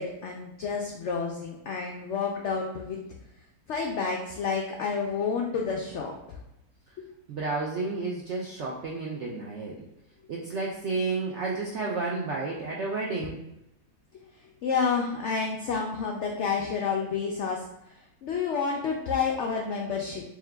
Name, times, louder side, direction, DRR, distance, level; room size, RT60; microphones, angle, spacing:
voice 1, 0.0-3.0 3.7-6.4 7.0-7.1 14.6-20.2, left 5 dB, 85° left, 0 dB, 0.6 m, -30 dB
voice 2, 7.3-9.8 10.3-13.4, right 3 dB, 75° right, -3 dB, 0.6 m, -31 dB
3.6 x 3.0 x 3.3 m, 0.87 s
omnidirectional pair, 1.8 m